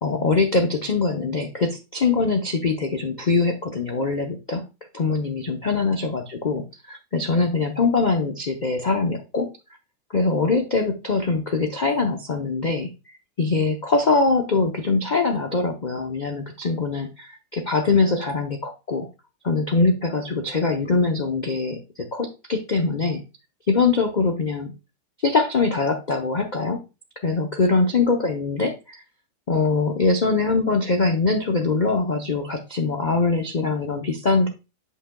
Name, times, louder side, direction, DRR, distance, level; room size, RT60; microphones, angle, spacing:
voice 1, 0.0-4.7 4.9-9.5 10.1-12.9 13.4-19.1 19.4-23.2 23.7-24.7 25.2-26.8 27.2-29.0 29.5-34.5, left 3 dB, 90° left, 4 dB, 0.4 m, -23 dB
8.3 x 5.8 x 2.2 m, 0.28 s
omnidirectional pair, 2.0 m